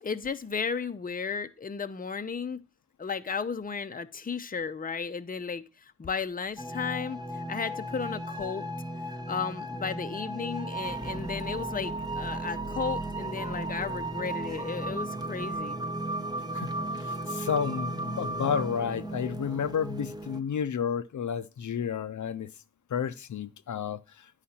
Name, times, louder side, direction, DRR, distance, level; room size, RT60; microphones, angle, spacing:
voice 1, 0.0-2.6 3.0-8.7 9.3-15.8, left 5 dB, 30° left, 0.6 m, -34 dB
sound 1, 6.6-20.4, right 2 dB, 15° right, 0.8 m, -35 dB
voice 2, 16.5-22.5 22.9-24.0, left 7 dB, 75° left, 0.6 m, -31 dB
10.0 x 4.9 x 4.2 m
wide cardioid pair, 80°, 30 cm